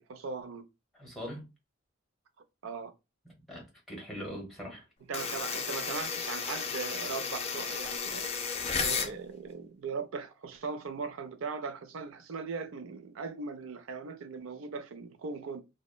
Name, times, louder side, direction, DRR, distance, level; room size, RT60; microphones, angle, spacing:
voice 1, 0.1-0.6 2.6-2.9 5.1-8.3 8.8-15.6, right 4 dB, 75° right, 0.5 m, -39 dB
voice 2, 0.9-1.5 3.2-4.8, equal, ahead, 0.9 m, -42 dB
sound 1, 5.1-9.1, left 5 dB, 30° left, 0.4 m, -33 dB
2.9 x 2.1 x 2.2 m
head